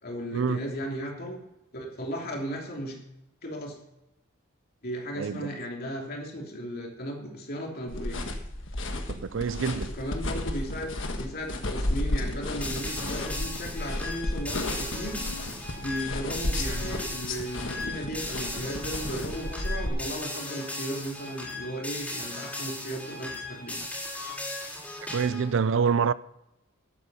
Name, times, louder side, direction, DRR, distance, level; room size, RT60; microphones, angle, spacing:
voice 1, 0.0-1.4 1.7-3.0 3.4-3.8 4.8-8.2 9.9-10.9 11.2-15.2 15.7-23.8, equal, 50° left, 3.3 m, -35 dB
voice 2, 5.2-5.5 9.1-9.9 25.1-26.1, right 6 dB, 65° right, 0.4 m, -26 dB
sound 1, 7.9-19.9, left 1 dB, 65° left, 1.5 m, -33 dB
sound 2, 12.6-25.5, left 2 dB, 5° left, 3.9 m, -37 dB
13.0 x 9.0 x 5.6 m
head